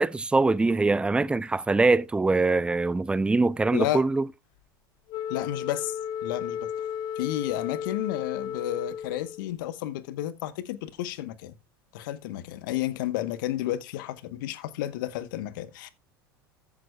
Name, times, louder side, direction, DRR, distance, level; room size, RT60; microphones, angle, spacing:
voice 1, 0.0-4.2, right 3 dB, 10° right, 0.4 m, -23 dB
voice 2, 3.7-4.0 5.3-5.9 6.2-6.7 7.2-11.5 11.9-15.9, left 14 dB, 65° left, 1.0 m, -32 dB
Wind instrument woodwind instrument, 5.1-9.5, left 8 dB, 45° left, 1.3 m, -34 dB
14.0 x 8.8 x 2.2 m
figure-of-eight pair, 80°, 12 cm